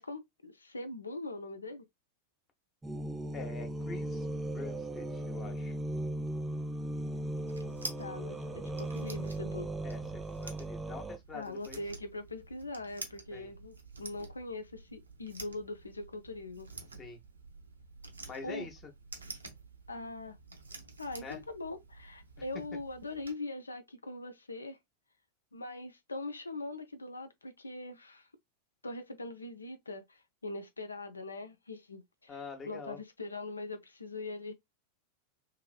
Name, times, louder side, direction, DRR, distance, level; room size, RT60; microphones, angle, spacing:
voice 1, 0.0-1.9 8.0-9.7 11.3-16.7 18.4-18.7 19.9-20.4 21.0-24.8 25.5-28.3 28.8-34.5, left 2 dB, 80° left, 0.4 m, -42 dB
sound 1, 2.8-11.2, right 1 dB, 10° right, 0.3 m, -37 dB
voice 2, 3.3-4.3 4.5-5.8 9.8-11.8 13.3-13.5 17.0-17.2 18.2-18.9 21.2-21.4 32.3-33.0, left 4 dB, 25° left, 0.8 m, -45 dB
sound 2, 7.1-23.3, right 3 dB, 75° right, 0.5 m, -49 dB
2.9 x 2.6 x 2.3 m
figure-of-eight pair, 90°, 0 cm